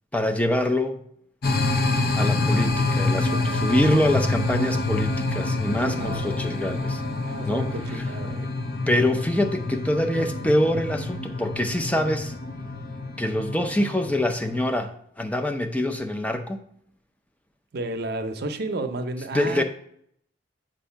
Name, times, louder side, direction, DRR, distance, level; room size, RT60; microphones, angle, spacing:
voice 1, 0.1-1.0 2.1-7.0 7.5-7.7 8.9-12.3 13.2-16.6 19.3-19.6, left 1 dB, 10° left, 5 dB, 0.5 m, -25 dB
sound 1, 1.4-14.7, left 2 dB, 55° left, 0.8 m, -27 dB
voice 2, 3.2-3.9 5.9-6.4 7.2-8.5 17.7-19.6, right 2 dB, 60° right, 7 dB, 0.6 m, -32 dB
7.2 x 2.6 x 5.6 m, 0.69 s
head